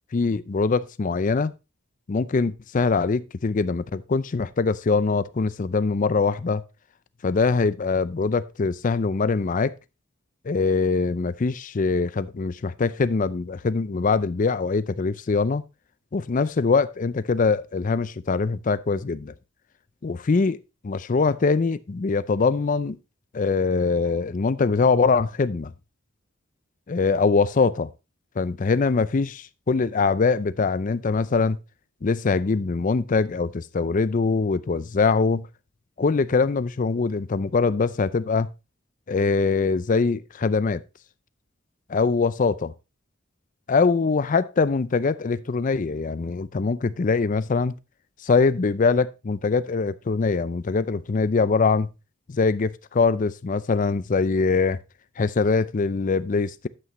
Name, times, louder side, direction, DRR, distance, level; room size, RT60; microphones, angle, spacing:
voice 1, 0.1-1.5 2.1-6.6 7.2-9.7 10.4-15.6 16.1-19.3 20.0-20.6 20.8-23.0 23.3-25.7 26.9-27.9 28.4-31.6 32.0-35.5 36.0-38.5 39.1-40.8 41.9-42.7 43.7-47.8 48.2-51.9 52.3-54.8 55.2-56.7, left 4 dB, 40° left, 0.5 m, -23 dB
9.9 x 8.2 x 3.1 m
head